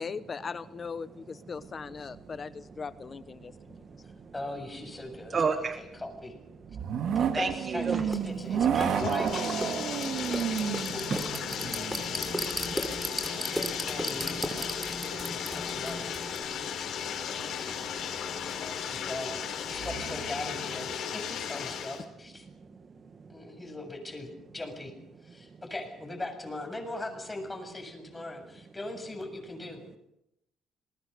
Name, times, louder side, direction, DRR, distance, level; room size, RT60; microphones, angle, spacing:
voice 1, 0.0-3.5 17.4-17.8, left 5 dB, 35° left, 14 dB, 1.0 m, -39 dB
sound 1, 1.9-2.6 2.9-3.0 6.7-13.1 18.0-18.1 19.7-21.0, right 8 dB, 65° right, 2.3 m, -32 dB
voice 2, 3.5-4.1 5.3-5.8 7.3-8.0 10.0-10.3 11.1-11.2 11.9-13.9 16.4-16.5 17.6-18.1, right 5 dB, 40° right, 7 dB, 1.7 m, -34 dB
voice 3, 4.3-6.3 7.2-9.6 9.9-11.0 13.4-16.1 18.8-22.5 23.3-24.9 25.2-30.0, left 2 dB, 15° left, 5 dB, 7.2 m, -40 dB
Bathtub (filling or washing), 8.0-22.0, left 8 dB, 65° left, 4.8 m, -36 dB
sound 2, 8.1-8.2 8.8-16.4, equal, 5° right, 4.4 m, -36 dB
27.5 x 21.0 x 6.9 m, 0.81 s
cardioid pair, 105°, 0 cm